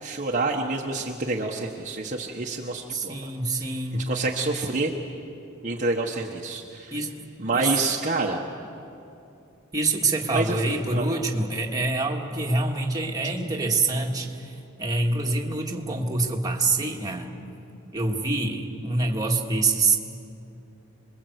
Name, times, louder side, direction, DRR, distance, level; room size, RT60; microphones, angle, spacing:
voice 1, 0.0-3.3 3.9-4.9 5.6-7.0 7.4-8.4 10.3-10.5 10.9-11.1, right 3 dB, 40° right, 0 dB, 1.3 m, -28 dB
voice 2, 2.9-4.1 6.9-7.9 9.7-14.4 14.8-17.3 17.9-20.0, right 3 dB, 20° right, 0 dB, 2.0 m, -26 dB
26.5 x 22.0 x 8.1 m, 2.7 s
head